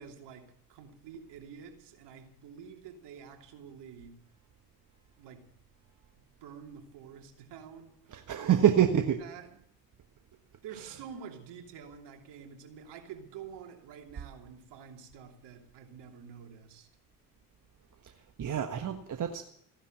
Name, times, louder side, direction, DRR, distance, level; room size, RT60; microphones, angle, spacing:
voice 1, 0.0-4.2 5.2-5.5 6.4-8.0 8.4-9.7 10.6-16.9, right 7 dB, 60° right, 2.9 m, -48 dB
voice 2, 8.1-9.2 18.0-18.1 18.4-19.4, right 9 dB, 40° right, 1.4 m, -26 dB
15.5 x 11.0 x 7.9 m
hypercardioid pair, 60°, 47 cm